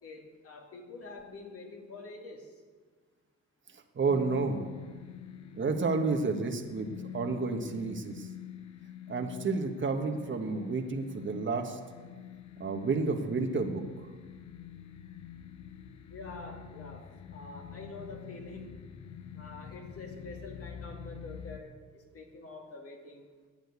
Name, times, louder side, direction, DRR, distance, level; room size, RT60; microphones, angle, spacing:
voice 1, 0.0-2.6 16.1-18.9 19.3-23.3, left 3 dB, 50° left, 1 dB, 2.5 m, -46 dB
voice 2, 3.9-4.6 5.5-6.9 7.1-8.3 9.1-11.8 12.6-13.8, right 4 dB, 40° right, 5 dB, 1.4 m, -30 dB
sound 1, 4.1-21.6, left 9 dB, 65° left, 0.9 m, -46 dB
10.5 x 8.8 x 8.2 m, 1.5 s
cardioid pair, 90°, 30 cm